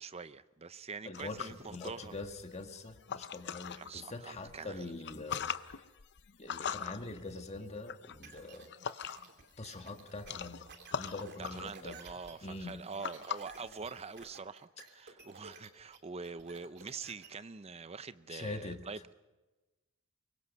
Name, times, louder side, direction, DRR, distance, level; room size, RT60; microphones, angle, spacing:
voice 1, 0.0-2.2 3.7-4.9 11.4-19.1, right 4 dB, 30° right, 0.7 m, -45 dB
sound 1, 1.1-3.9 4.4-9.5 9.7-14.3, left 8 dB, 55° left, 0.7 m, -42 dB
voice 2, 1.1-5.8 6.4-8.7 9.6-10.7 11.0-12.0 12.4-12.8 18.3-18.8, left 2 dB, 30° left, 1.7 m, -43 dB
sound 2, 8.2-17.3, right 4 dB, 55° right, 2.9 m, -54 dB
24.5 x 22.0 x 5.4 m
head